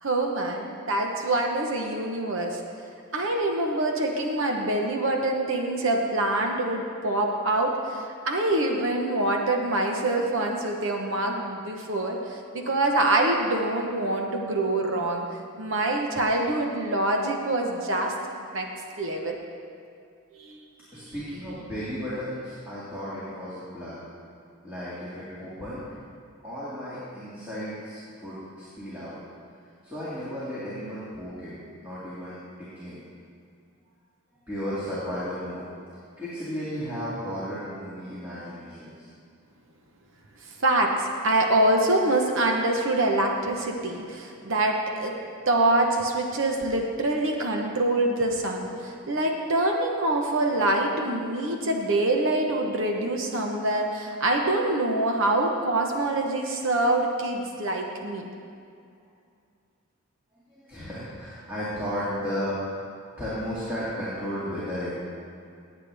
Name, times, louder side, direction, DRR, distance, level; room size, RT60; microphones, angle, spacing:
voice 1, 0.0-2.6 3.1-15.2 15.6-18.1 18.5-18.7 19.0-19.4 20.3-20.6 40.5-45.2 45.5-58.3, right 2 dB, 60° right, 2 dB, 1.1 m, -25 dB
voice 2, 20.9-24.0 24.6-25.9 26.4-29.2 29.8-31.6 31.8-33.0 34.5-35.7 36.2-39.1 60.5-62.9 63.2-64.9, equal, 10° right, -11 dB, 2.4 m, -34 dB
18.5 x 8.2 x 3.5 m, 2.4 s
head